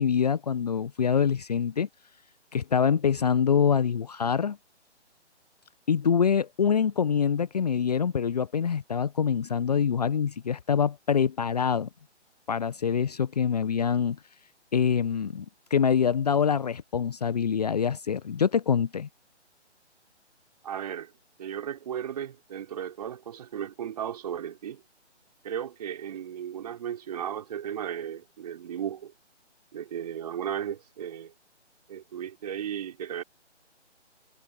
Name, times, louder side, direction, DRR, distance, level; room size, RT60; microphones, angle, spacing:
voice 1, 0.0-1.9 2.5-4.6 5.9-11.9 12.5-14.2 14.7-15.4 15.7-19.1, left 7 dB, 35° left, 1.1 m, -25 dB
voice 2, 20.6-21.1 21.4-24.8 25.4-29.1 29.7-31.3 31.9-33.2, right 9 dB, 35° right, 4.8 m, -35 dB
figure-of-eight pair, 145°, 35 cm